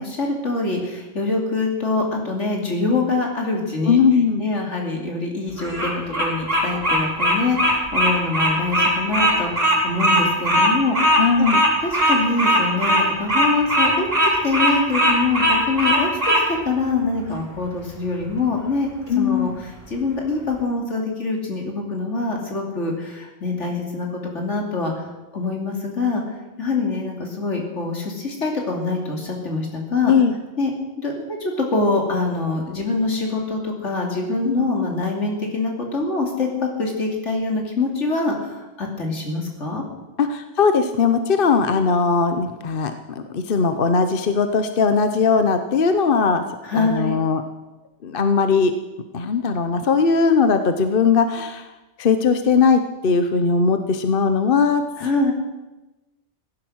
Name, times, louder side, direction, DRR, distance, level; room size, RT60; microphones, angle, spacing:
voice 1, 0.0-4.0 4.4-11.5 11.8-18.9 19.2-25.0 25.3-30.1 30.6-30.7 31.0-39.8 46.6-47.2 55.0-55.3, left 3 dB, 75° left, 1 dB, 3.1 m, -24 dB
voice 2, 3.8-4.4 11.2-11.6 19.1-19.5 30.1-30.3 34.4-34.5 40.2-46.4 46.7-47.4 48.0-48.7 49.1-51.7 52.0-55.1, left 5 dB, 50° left, 8 dB, 1.0 m, -19 dB
Bird vocalization bird call bird song, 5.6-16.4, equal, 85° right, 4.2 m, -18 dB
16.0 x 11.0 x 6.3 m, 1.1 s
omnidirectional pair, 1.2 m